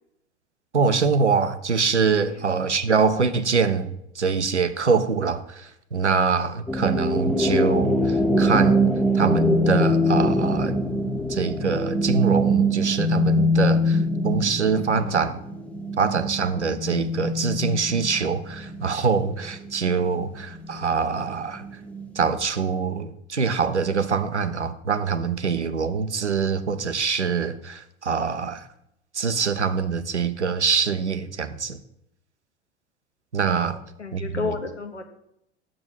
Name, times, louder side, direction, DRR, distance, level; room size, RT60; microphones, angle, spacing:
voice 1, 0.7-8.8 9.1-10.8 11.3-15.4 16.0-21.6 22.2-28.6 29.1-31.8 33.3-33.8 34.1-34.6, right 5 dB, 85° right, 0.7 m, -24 dB
sound 1, 6.7-19.0 19.4-22.4, equal, 5° left, 0.7 m, -23 dB
voice 2, 33.6-35.1, left 4 dB, 85° left, 1.3 m, -32 dB
7.5 x 6.9 x 7.7 m
figure-of-eight pair, 80°, 33 cm